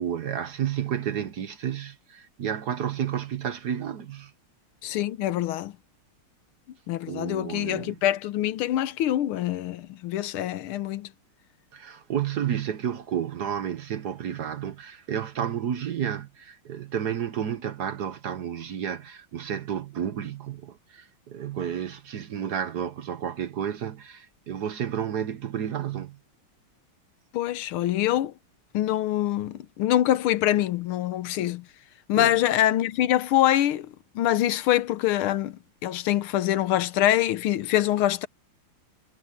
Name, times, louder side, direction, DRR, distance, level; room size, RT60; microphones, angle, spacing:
voice 1, 0.0-4.3 7.1-8.0 11.7-26.2 32.2-32.3, right 9 dB, 55° right, 1.4 m, -31 dB
voice 2, 4.8-5.7 6.9-11.1 27.3-28.3 28.7-31.6 32.1-33.9 34.1-38.3, left 13 dB, 85° left, 1.7 m, -24 dB
omnidirectional pair, 2.3 m